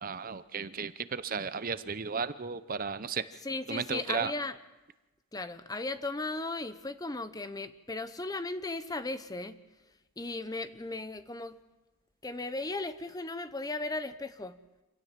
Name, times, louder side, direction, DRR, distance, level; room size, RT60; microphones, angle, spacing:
voice 1, 0.0-3.2 3.7-4.3, right 5 dB, 40° right, 14 dB, 0.7 m, -34 dB
voice 2, 3.4-4.6 5.3-9.6 10.2-11.6 12.2-14.6, left 2 dB, 15° left, 12 dB, 0.8 m, -36 dB
26.5 x 17.0 x 7.5 m, 1.1 s
head